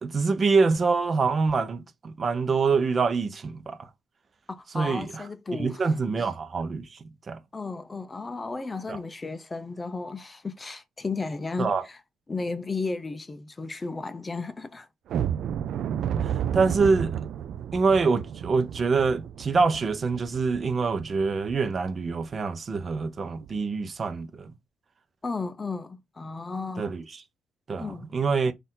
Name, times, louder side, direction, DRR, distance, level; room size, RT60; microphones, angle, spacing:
voice 1, 0.0-3.9 4.7-5.2 5.6-7.4 8.9-9.0 11.6-11.8 16.2-17.1 17.7-24.5 26.8-27.2 27.7-28.5, right 4 dB, 40° right, 0.7 m, -25 dB
voice 2, 4.5-5.9 6.2-6.3 7.5-12.0 12.3-14.9 25.2-27.0 27.8-28.1, left 3 dB, 25° left, 0.5 m, -34 dB
sound 1, 15.1-21.8 22.2-22.3 22.8-22.9 23.4-23.6, right 9 dB, 70° right, 0.3 m, -32 dB
4.2 x 2.5 x 3.7 m
cardioid pair, 90°, 0 cm